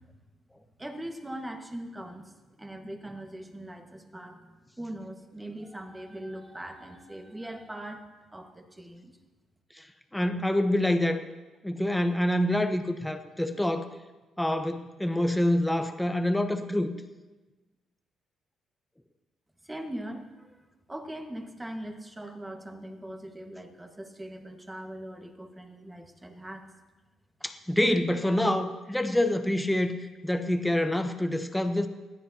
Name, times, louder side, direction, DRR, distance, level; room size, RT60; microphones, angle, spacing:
voice 1, 0.8-2.3 2.6-9.2 19.6-20.6 20.9-26.7, right 1 dB, 15° right, 4 dB, 1.6 m, -41 dB
voice 2, 10.1-11.2 11.6-13.9 14.4-16.9 27.4-30.0 30.2-31.9, left 1 dB, 5° left, 6 dB, 1.0 m, -26 dB
20.0 x 13.5 x 2.8 m, 1.2 s
cardioid pair, 90°, 0 cm